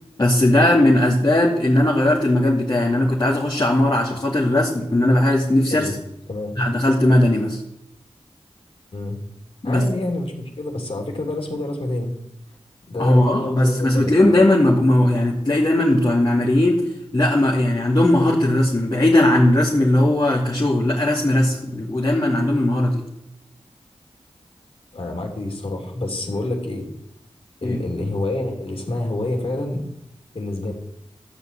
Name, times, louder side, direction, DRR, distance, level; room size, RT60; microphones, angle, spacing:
voice 1, 0.2-5.9 6.6-7.6 9.6-9.9 13.0-16.8 17.1-23.0 27.6-27.8, left 1 dB, 35° left, -5 dB, 2.6 m, -18 dB
voice 2, 9.6-12.1 12.9-14.2 24.9-26.9 27.6-29.8 30.3-30.7, left 2 dB, 60° left, 1 dB, 3.2 m, -27 dB
13.0 x 5.6 x 8.5 m, 0.82 s
cardioid pair, 45°, 11 cm